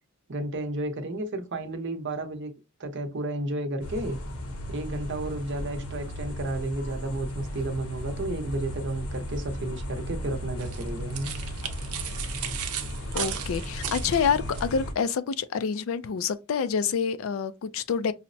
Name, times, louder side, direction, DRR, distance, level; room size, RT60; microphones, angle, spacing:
voice 1, 0.3-2.5 2.8-4.2 4.7-11.3, right 1 dB, 55° right, 0.7 m, -32 dB
sound 1, 3.8-14.9, equal, 85° left, 1.0 m, -35 dB
sound 2, 10.6-14.7, right 9 dB, 90° right, 0.7 m, -35 dB
voice 2, 13.1-18.1, left 6 dB, 65° left, 0.4 m, -27 dB
5.6 x 2.0 x 2.6 m
head